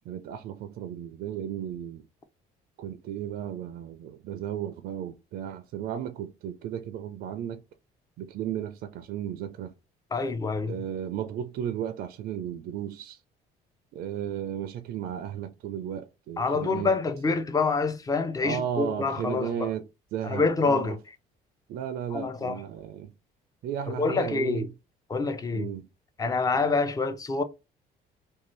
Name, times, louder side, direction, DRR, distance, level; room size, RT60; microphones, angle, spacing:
voice 1, 0.1-2.0 2.8-7.6 8.2-9.7 10.7-13.2 13.9-16.9 18.4-19.8 20.1-21.0 21.7-23.1 23.6-24.6 25.5-25.8, right 9 dB, 70° right, 0.4 m, -34 dB
voice 2, 10.1-10.8 16.4-19.7 20.2-21.1 22.1-22.6 23.9-24.7 25.1-25.7 26.2-27.4, left 4 dB, 20° left, 0.5 m, -27 dB
2.7 x 2.3 x 3.0 m
cardioid pair, 110°, 17 cm